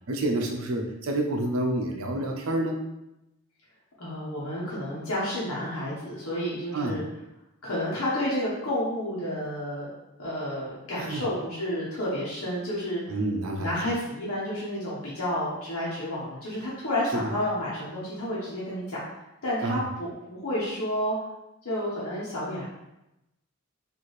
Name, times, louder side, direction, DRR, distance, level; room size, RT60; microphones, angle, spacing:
voice 1, 0.1-2.8 6.7-7.0 11.0-11.2 13.1-13.7 17.1-17.2 19.6-19.8, right 1 dB, 85° right, 2 dB, 0.7 m, -28 dB
voice 2, 4.0-7.0 7.6-9.8 10.2-13.0 13.6-19.0 19.4-21.2 21.6-22.7, left 1 dB, 80° left, -8 dB, 1.1 m, -30 dB
4.4 x 2.7 x 3.2 m, 0.91 s
head